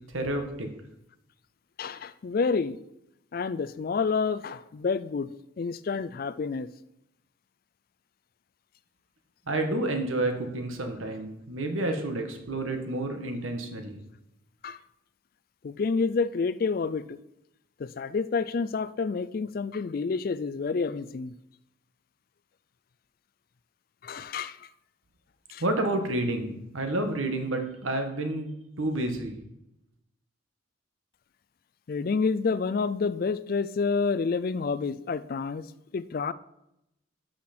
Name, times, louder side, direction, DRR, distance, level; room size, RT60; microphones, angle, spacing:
voice 1, 0.1-0.7 9.5-14.0 25.6-28.5 28.8-29.4, right 2 dB, 85° right, 5 dB, 1.4 m, -29 dB
voice 2, 1.8-2.8 3.3-5.3 5.6-6.7 14.6-14.8 15.6-17.2 17.8-21.3 24.0-24.7 25.5-25.6 31.9-35.6 35.9-36.3, left 4 dB, 45° left, 16 dB, 0.3 m, -29 dB
11.5 x 5.8 x 4.3 m, 0.86 s
head